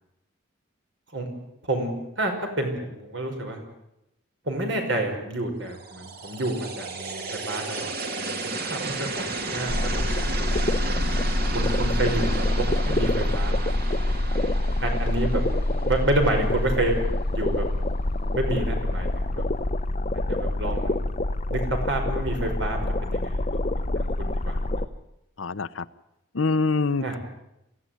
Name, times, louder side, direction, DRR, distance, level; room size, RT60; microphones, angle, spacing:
voice 1, 2.2-3.6 4.4-10.0 11.5-13.7 14.8-15.4 15.8-16.9 17.3-17.7 18.3-19.4 20.1-21.0 21.5-24.6 27.0-27.2, right 1 dB, 65° right, 4 dB, 5.5 m, -29 dB
sound 1, 5.7-16.8, right 2 dB, 50° right, 2.7 m, -33 dB
sound 2, 9.7-24.9, left 1 dB, 35° left, 0.7 m, -26 dB
voice 2, 25.4-25.8 26.3-27.2, left 3 dB, 85° left, 15 dB, 0.8 m, -25 dB
23.0 x 16.0 x 9.5 m, 0.87 s
head